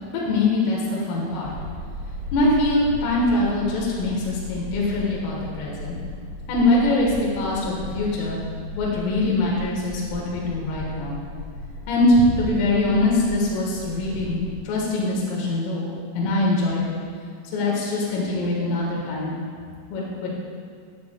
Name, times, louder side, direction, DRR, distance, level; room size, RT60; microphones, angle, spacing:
voice 1, 0.1-1.5 2.3-6.0 6.5-8.4 8.8-11.2 11.9-14.4 14.7-17.0 17.5-19.4 19.9-20.3, left 2 dB, 80° left, -4 dB, 4.0 m, -23 dB
sound 1, 1.4-14.6, left 1 dB, 70° right, 3.5 m, -36 dB
11.0 x 9.7 x 2.2 m, 2.1 s
omnidirectional pair, 5.8 m